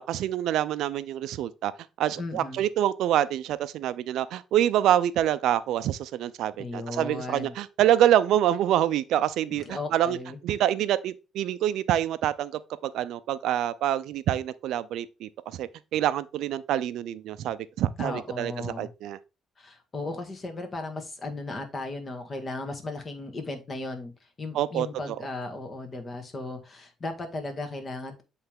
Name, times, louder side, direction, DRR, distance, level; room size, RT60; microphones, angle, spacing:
voice 1, 0.0-1.7 2.0-10.2 10.4-19.2 24.5-25.2, right 11 dB, 75° right, 0.4 m, -26 dB
voice 2, 2.1-2.6 6.6-7.5 9.5-10.4 18.0-18.9 19.6-24.1 24.4-28.2, left 2 dB, 35° left, 1.6 m, -36 dB
8.0 x 3.3 x 3.6 m
cardioid pair, 90°, 0 cm